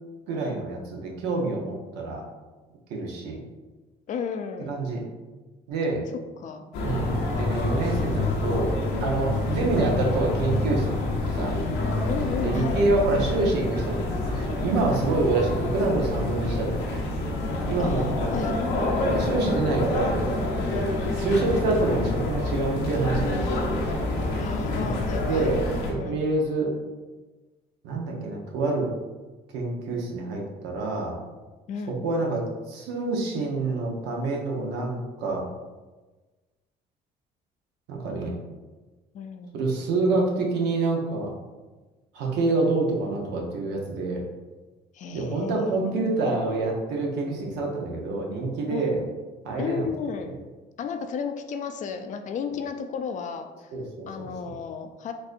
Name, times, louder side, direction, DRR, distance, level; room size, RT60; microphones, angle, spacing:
voice 1, 0.3-2.2 2.9-3.4 4.7-5.0 5.7-6.0 6.8-8.7 9.0-10.9 11.3-11.6 12.4-14.0 14.3-17.0 17.6-20.3 21.1-24.4 24.7-25.6 25.9-26.7 27.8-28.9 29.5-31.2 32.0-32.4 32.7-35.5 37.9-38.4 39.5-41.3 42.1-44.2 45.1-49.0 49.4-49.9 53.7-54.5, right 3 dB, 90° right, -1 dB, 0.8 m, -27 dB
voice 2, 4.1-4.8 6.4-6.6 12.1-12.8 17.8-18.5 19.4-19.8 24.4-26.2 31.7-32.0 39.1-39.6 44.9-46.6 48.7-49.0 49.6-50.3 50.8-53.7 54.1-55.1, left 6 dB, 50° left, 6 dB, 0.4 m, -33 dB
sound 1, 6.7-25.9, left 2 dB, 85° left, 0.7 m, -27 dB
4.0 x 2.6 x 2.5 m, 1.2 s
cardioid pair, 110°, 17 cm